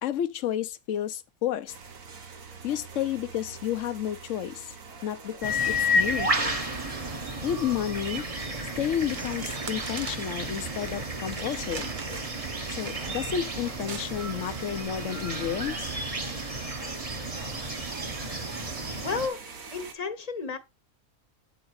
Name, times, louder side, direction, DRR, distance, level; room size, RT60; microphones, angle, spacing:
voice 1, 0.0-1.7 2.6-4.7 5.0-6.6 7.4-8.2 8.8-11.9 12.7-16.0, left 10 dB, 65° left, 1.0 m, -31 dB
sound 1, 1.7-19.9, right 4 dB, 65° right, 1.6 m, -45 dB
sound 2, 5.4-19.3, equal, 25° right, 1.0 m, -32 dB
sound 3, 9.0-15.9 16.4-16.7, right 6 dB, 45° right, 0.7 m, -44 dB
voice 2, 19.0-19.4 19.7-20.6, left 5 dB, 30° left, 1.0 m, -32 dB
8.8 x 3.8 x 4.7 m
omnidirectional pair, 1.5 m